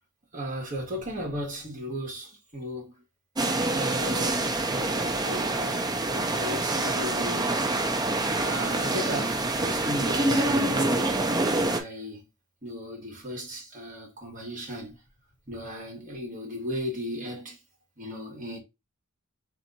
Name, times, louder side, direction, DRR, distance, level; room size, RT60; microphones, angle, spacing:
voice 1, 0.3-2.9 3.7-7.6 8.3-11.1 11.5-12.2 12.6-15.0 15.5-17.6 18.0-18.6, equal, 35° right, 1.7 m, -36 dB
sound 1, 3.4-11.8, right 2 dB, 20° right, 0.5 m, -26 dB
3.4 x 3.0 x 3.9 m
head